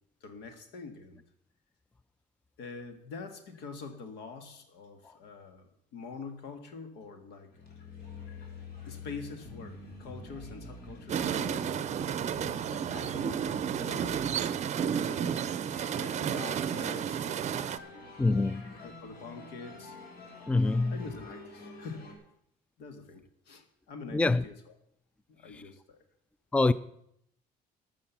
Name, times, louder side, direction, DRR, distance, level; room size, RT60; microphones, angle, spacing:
voice 1, 0.2-1.2 2.6-7.5 8.9-12.0 12.7-13.4 13.8-14.6 14.9-15.4 15.9-17.9 18.8-20.0 20.9-22.2 22.8-24.5 25.3-26.0, left 4 dB, 90° left, 1.7 m, -45 dB
sound 1, 7.5-22.2, left 3 dB, 65° left, 3.2 m, -48 dB
sound 2, 11.1-17.8, right 8 dB, 45° right, 0.6 m, -32 dB
voice 2, 18.2-18.7 20.5-21.0 24.1-24.4 25.5-25.6 26.5-26.7, left 3 dB, 5° left, 0.3 m, -26 dB
13.0 x 6.2 x 7.0 m
cardioid pair, 110°, 17 cm